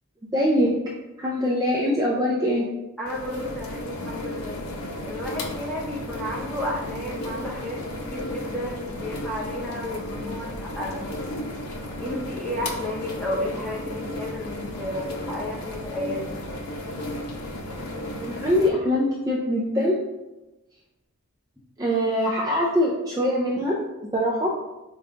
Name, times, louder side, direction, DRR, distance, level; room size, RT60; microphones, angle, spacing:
voice 1, 0.2-0.7 1.2-2.7 18.2-20.0 21.8-23.8 24.1-24.5, equal, 15° right, -4 dB, 0.4 m, -23 dB
voice 2, 3.0-4.7 5.0-11.1 12.0-16.3, left 1 dB, 5° left, -4 dB, 0.7 m, -32 dB
sound 1, 3.1-18.7, left 1 dB, 90° left, 0.6 m, -34 dB
5.1 x 2.2 x 3.7 m, 1.0 s
head